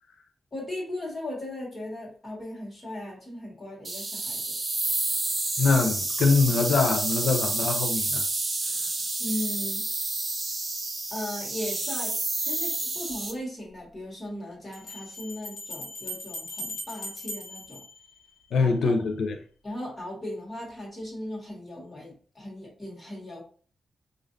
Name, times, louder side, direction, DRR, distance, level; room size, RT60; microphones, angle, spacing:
voice 1, 0.5-4.5 9.2-9.8 11.1-12.1 12.4-17.8 18.6-18.7 19.6-23.4, left 1 dB, 20° left, 1.6 m, -37 dB
sound 1, 3.8-13.3, right 2 dB, 25° right, 0.6 m, -29 dB
voice 2, 5.6-8.2 18.5-19.4, left 4 dB, 90° left, 0.5 m, -23 dB
sound 2, 13.1-13.2 14.7-18.7, equal, 60° left, 1.3 m, -39 dB
5.0 x 2.6 x 2.5 m
wide cardioid pair, 175°, 0 cm